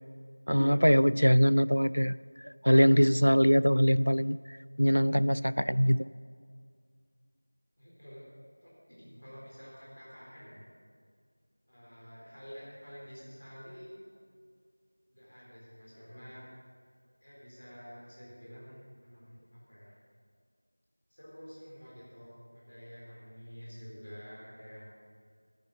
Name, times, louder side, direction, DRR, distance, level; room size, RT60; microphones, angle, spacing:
voice 1, 0.5-2.2 2.4-4.4 4.8-6.1, equal, 80° left, 17 dB, 0.3 m, -23 dB
voice 2, 7.8-8.3 8.6-10.7 11.7-14.1 15.1-16.5 17.2-20.0 21.1-25.0, equal, 40° left, -6 dB, 4.0 m, -49 dB
10.5 x 10.5 x 6.5 m, 2.1 s
figure-of-eight pair, 180°, 0 cm